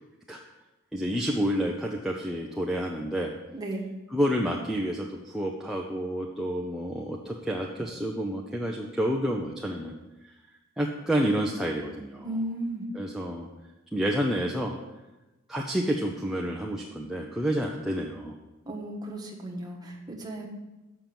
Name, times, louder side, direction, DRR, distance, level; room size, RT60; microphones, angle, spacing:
voice 1, 0.9-3.3 4.1-9.9 10.2-10.3 10.8-12.3 12.9-13.5 13.9-14.7 15.5-18.4, equal, ahead, -2 dB, 0.6 m, -29 dB
voice 2, 12.2-12.9 18.7-20.5, right 1 dB, 20° right, -1 dB, 1.4 m, -34 dB
7.7 x 5.8 x 6.9 m, 1.0 s
head